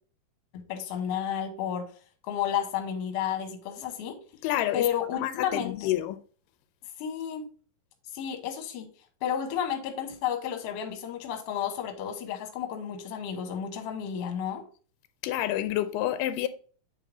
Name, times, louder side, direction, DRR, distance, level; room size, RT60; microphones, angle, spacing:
voice 1, 0.5-1.9 2.3-4.2 4.7-5.9 7.0-7.5 8.1-8.9 9.2-14.6, left 9 dB, 65° left, 1.7 m, -32 dB
voice 2, 4.4-6.2 15.2-16.5, left 13 dB, 90° left, 2.2 m, -29 dB
7.6 x 3.6 x 3.7 m
omnidirectional pair, 3.8 m